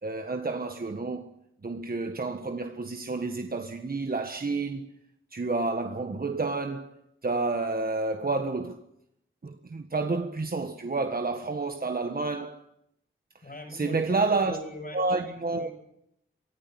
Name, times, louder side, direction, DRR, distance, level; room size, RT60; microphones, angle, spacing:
voice 1, 0.0-1.3 1.6-4.9 5.3-8.8 9.4-12.7 13.4-14.6 14.9-15.7, right 3 dB, 45° right, 1.5 m, -30 dB
voice 2, 13.4-15.7, left 1 dB, 45° left, 6.8 m, -41 dB
24.5 x 15.0 x 9.7 m
wide cardioid pair, 70°, 21 cm